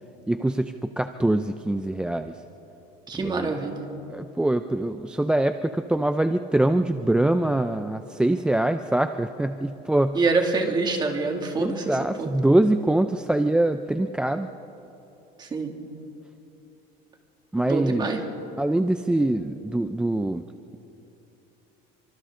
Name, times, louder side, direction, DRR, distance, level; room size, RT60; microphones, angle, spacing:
voice 1, 0.3-2.4 3.1-3.5 4.1-10.2 11.6-14.5 17.5-18.1 18.6-20.8, right 1 dB, 5° right, 8 dB, 0.4 m, -24 dB
voice 2, 3.1-3.9 10.1-12.4 15.4-15.8 17.7-18.2, right 3 dB, 25° right, 2 dB, 2.5 m, -26 dB
29.5 x 25.0 x 3.8 m, 2.9 s
cardioid pair, 145°, 19 cm